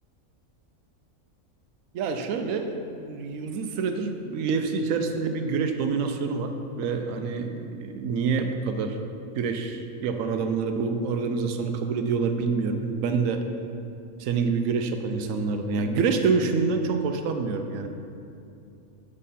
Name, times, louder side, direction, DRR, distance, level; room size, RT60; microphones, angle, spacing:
voice 1, 1.9-9.0 9.4-13.4 14.2-17.9, right 5 dB, 75° right, 6 dB, 1.0 m, -27 dB
7.4 x 5.5 x 4.2 m, 2.6 s
omnidirectional pair, 1.4 m